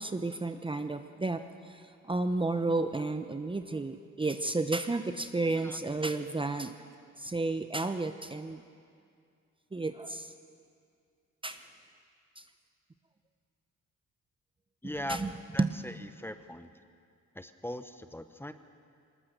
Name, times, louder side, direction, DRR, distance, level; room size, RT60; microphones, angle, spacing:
voice 1, 0.0-6.9 7.2-8.6 9.7-10.3 11.4-11.6 12.4-12.5 15.1-15.3 15.6-15.7, right 3 dB, 15° right, 8 dB, 0.8 m, -32 dB
voice 2, 14.8-15.2 15.5-16.8 17.3-18.5, left 1 dB, 5° left, 9 dB, 0.9 m, -40 dB
20.5 x 19.5 x 6.7 m, 2.3 s
cardioid pair, 90°, 30 cm